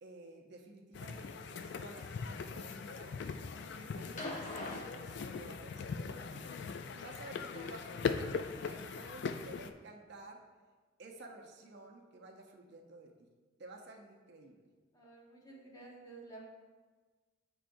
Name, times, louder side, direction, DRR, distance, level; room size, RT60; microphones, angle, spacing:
voice 1, 0.0-3.4 3.8-6.5 6.9-10.4 11.0-13.3 13.6-14.6, right 2 dB, 60° right, 1 dB, 0.7 m, -53 dB
sound 1, 0.9-9.7, left 5 dB, 60° left, 0.3 m, -40 dB
sound 2, 4.2-5.8 7.1-7.2, left 1 dB, 40° left, 0.9 m, -44 dB
voice 2, 14.9-16.4, right 3 dB, 20° left, -3 dB, 1.1 m, -52 dB
8.9 x 4.6 x 2.6 m, 1.4 s
head